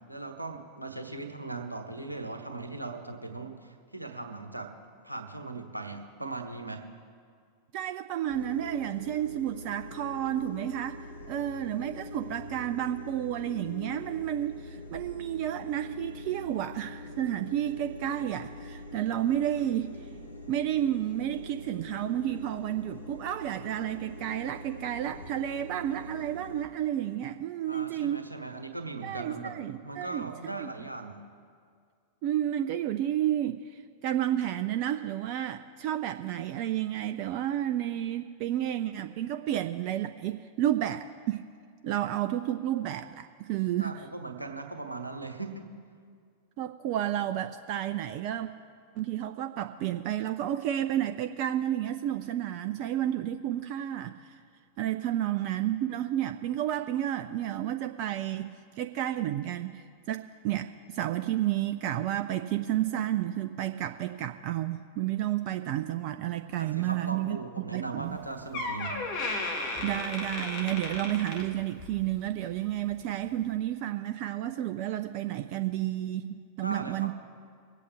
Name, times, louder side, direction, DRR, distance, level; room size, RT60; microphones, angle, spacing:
voice 1, 0.1-4.7 5.0-6.9 27.6-29.6 29.8-31.2 43.8-45.7 66.6-69.0 76.6-77.1, right 3 dB, 85° right, 4 dB, 1.2 m, -39 dB
voice 2, 7.7-19.9 20.5-28.2 29.0-30.3 30.6-30.7 32.2-41.4 41.8-43.9 46.6-48.5 49.0-54.3 54.8-67.4 67.7-68.2 69.8-77.1, right 12 dB, 45° right, 8 dB, 0.4 m, -31 dB
sound 1, 8.3-26.7, left 1 dB, 80° left, 1.2 m, -44 dB
Door, 68.1-68.2 68.5-72.0 72.4-72.7 73.4-73.5, left 2 dB, 45° left, 1.8 m, -35 dB
24.5 x 8.4 x 3.4 m, 2.1 s
figure-of-eight pair, 90°, 0 cm